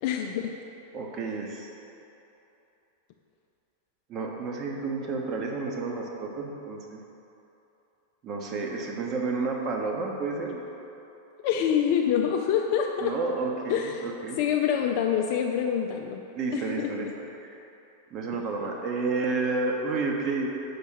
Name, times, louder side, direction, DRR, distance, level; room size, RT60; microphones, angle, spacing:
voice 1, 0.0-0.5 11.4-13.1 13.7-14.1 14.4-16.2 16.5-16.9, left 8 dB, 45° left, 2 dB, 0.4 m, -26 dB
voice 2, 0.9-1.7 4.1-7.0 8.2-10.6 13.0-14.4 16.3-17.1 17.4-17.5 18.1-20.5, right 3 dB, 35° right, 0 dB, 1.0 m, -30 dB
5.4 x 5.1 x 6.3 m, 2.9 s
figure-of-eight pair, 90°, 0 cm